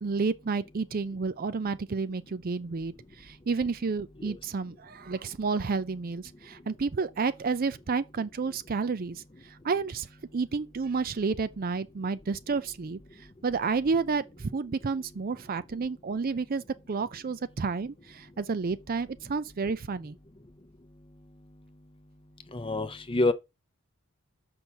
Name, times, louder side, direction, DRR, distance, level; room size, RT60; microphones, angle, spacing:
voice 1, 0.0-9.2 9.6-10.1 10.3-13.0 13.4-16.6 16.9-20.2, right 4 dB, 40° right, 0.5 m, -30 dB
voice 2, 22.5-23.3, left 2 dB, 25° left, 0.6 m, -27 dB
6.8 x 5.4 x 4.5 m
head